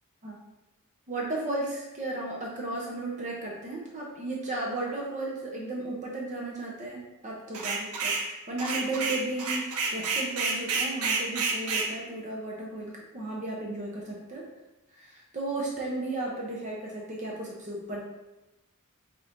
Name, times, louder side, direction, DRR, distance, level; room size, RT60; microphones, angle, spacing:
voice 1, 1.1-14.5 14.9-18.0, right 2 dB, 35° right, -2 dB, 0.7 m, -34 dB
sound 1, 7.5-8.3 8.6-11.9, right 4 dB, 75° right, 0.6 m, -29 dB
5.3 x 3.0 x 2.6 m, 1.0 s
head